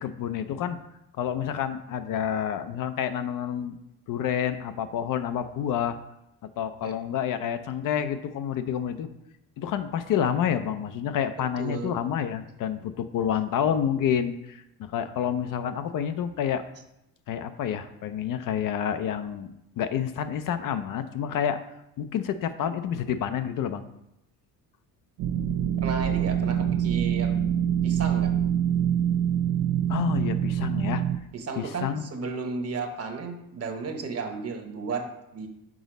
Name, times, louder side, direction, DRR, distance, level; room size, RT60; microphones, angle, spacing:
voice 1, 0.0-0.8 1.2-3.8 4.1-6.0 6.6-9.1 9.6-16.6 17.3-21.6 22.0-23.9 29.9-31.0 31.6-32.1, left 9 dB, 60° left, 10 dB, 0.6 m, -28 dB
voice 2, 11.6-12.0 25.8-27.4 27.8-28.3 31.3-35.5, right 4 dB, 40° right, 5 dB, 1.1 m, -33 dB
sound 1, 25.2-31.2, right 9 dB, 90° right, 0.6 m, -25 dB
6.2 x 4.0 x 5.2 m, 0.83 s
cardioid pair, 110°, 37 cm